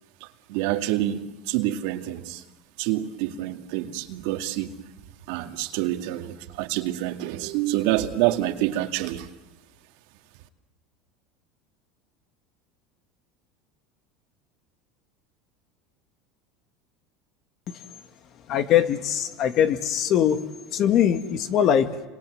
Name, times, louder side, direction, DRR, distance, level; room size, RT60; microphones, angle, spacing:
voice 1, 0.2-2.4 2.8-4.7 5.3-9.3, right 14 dB, 70° right, 2.1 m, -27 dB
voice 2, 18.5-20.4 20.7-22.1, left 9 dB, 50° left, 2.0 m, -21 dB
29.5 x 25.0 x 8.0 m
supercardioid pair, 115°, 0 cm